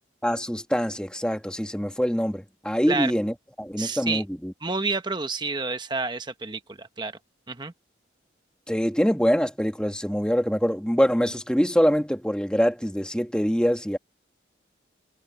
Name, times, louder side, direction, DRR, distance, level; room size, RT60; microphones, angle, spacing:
voice 1, 0.2-4.5 8.7-14.0, equal, 5° left, 1.8 m, -24 dB
voice 2, 3.8-4.2 4.6-7.1 7.5-7.7, right 3 dB, 25° right, 1.0 m, -29 dB
head